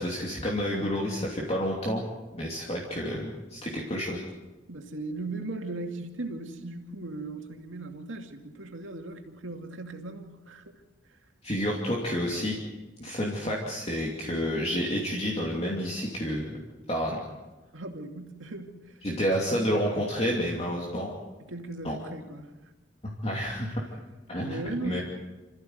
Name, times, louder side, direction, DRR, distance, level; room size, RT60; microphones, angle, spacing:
voice 1, 0.0-2.0 2.3-4.2 11.4-12.6 13.0-16.6 16.9-17.2 19.0-21.1 21.8-22.0 23.0-23.8 24.3-25.0, equal, 30° left, -3 dB, 2.8 m, -29 dB
voice 2, 4.7-10.7 11.1-11.2 17.7-19.3 21.4-22.5 24.4-25.0, right 2 dB, 80° right, 4 dB, 2.5 m, -38 dB
27.5 x 14.5 x 8.0 m, 1.1 s
head